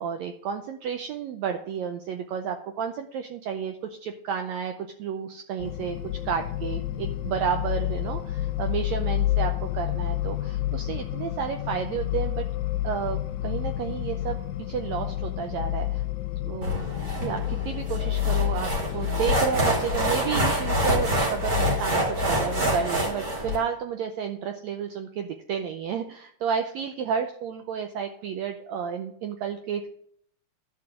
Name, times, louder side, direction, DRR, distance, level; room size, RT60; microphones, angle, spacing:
voice 1, 0.0-6.0 6.2-12.4 12.8-14.4 14.7-16.0 16.4-29.9, right 7 dB, 75° right, 6 dB, 1.7 m, -31 dB
sound 1, 5.6-22.9, left 14 dB, 75° left, 1.9 m, -30 dB
sound 2, 16.6-23.6, right 1 dB, 30° right, 2.6 m, -27 dB
12.0 x 4.9 x 7.3 m, 0.65 s
omnidirectional pair, 3.6 m